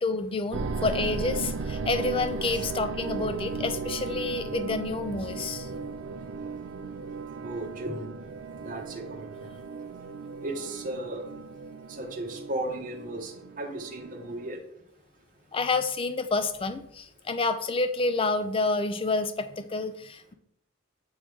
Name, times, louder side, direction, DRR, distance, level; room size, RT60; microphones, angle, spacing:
voice 1, 0.0-5.7 15.5-20.3, left 3 dB, 25° left, 9 dB, 0.4 m, -29 dB
sound 1, 0.5-14.5, right 4 dB, 60° right, 0.4 m, -36 dB
voice 2, 7.4-8.1 8.6-9.3 10.4-11.2 12.0-13.3 13.6-14.6, right 1 dB, 40° right, 0 dB, 0.9 m, -35 dB
8.6 x 3.1 x 3.5 m, 0.71 s
head